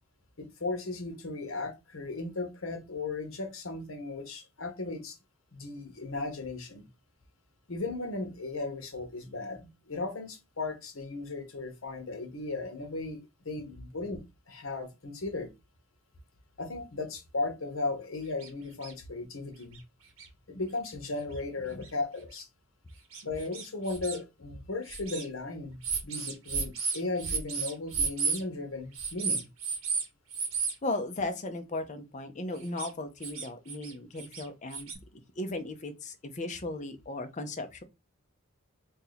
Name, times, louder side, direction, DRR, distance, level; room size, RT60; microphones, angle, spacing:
voice 1, 0.4-5.2 5.5-6.9 7.7-14.2 14.5-15.5 16.6-19.8 20.5-22.5 23.2-29.5, left 3 dB, 70° left, 1.0 m, -36 dB
sound 1, 18.4-18.5 18.8-18.9 19.7-19.8 20.2-20.3 20.9-21.0 21.8-21.9 22.3-22.4 23.1-24.2 24.9-25.3 25.8-28.4 29.0-30.0 30.3-30.7 32.6-32.9 33.2-33.9 34.2-34.9, right 5 dB, 80° right, 1.1 m, -32 dB
voice 2, 30.8-37.8, left 2 dB, 35° left, 0.6 m, -36 dB
2.8 x 2.7 x 3.9 m
head